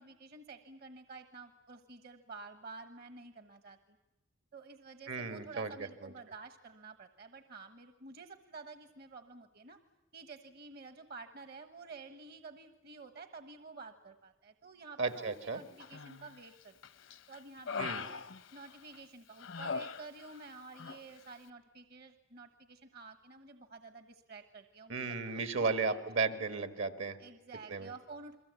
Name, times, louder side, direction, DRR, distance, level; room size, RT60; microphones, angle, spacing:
voice 1, 0.0-4.0 4.5-9.8 10.1-16.8 17.3-18.2 18.5-26.0 27.2-28.4, right 4 dB, 50° right, 9 dB, 1.2 m, -51 dB
voice 2, 5.1-5.7 6.0-6.1 15.0-15.6 17.8-18.0 24.9-27.2 27.7-27.9, right 4 dB, 70° right, 9 dB, 1.8 m, -34 dB
Human voice, 15.8-16.4 16.8-19.0 19.4-20.5 20.7-21.0, left 5 dB, 70° left, 0.9 m, -41 dB
29.0 x 22.0 x 8.2 m, 0.99 s
head